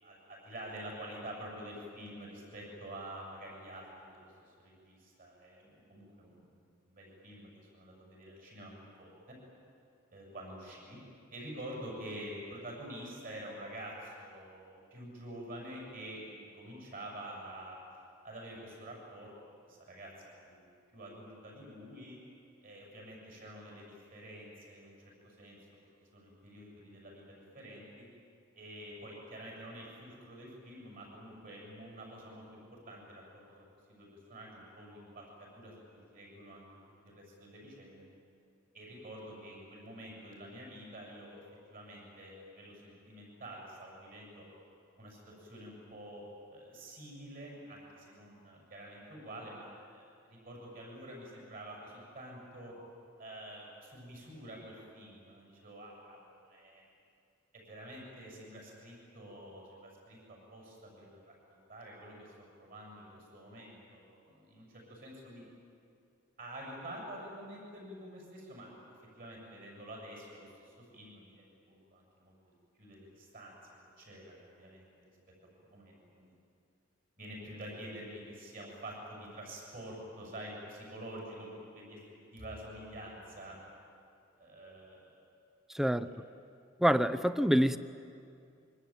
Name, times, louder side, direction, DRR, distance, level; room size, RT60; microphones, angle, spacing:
voice 1, 0.0-9.4 10.1-11.0 11.3-17.8 18.2-20.1 20.4-22.2 22.6-24.9 25.2-25.6 26.1-28.0 28.6-33.2 33.5-35.8 36.1-36.7 37.1-38.0 38.7-41.4 41.7-44.4 45.0-46.2 46.5-50.0 50.3-52.7 53.2-56.8 57.5-65.4 66.4-68.7 69.2-72.3 72.8-75.1 75.6-76.3 77.2-82.0 82.3-83.5 84.4-85.2 86.0-86.1, right 1 dB, 45° right, -1 dB, 7.8 m, -48 dB
voice 2, 85.7-86.1 86.8-87.8, equal, ahead, 12 dB, 0.6 m, -26 dB
26.0 x 24.5 x 9.2 m, 2.5 s
head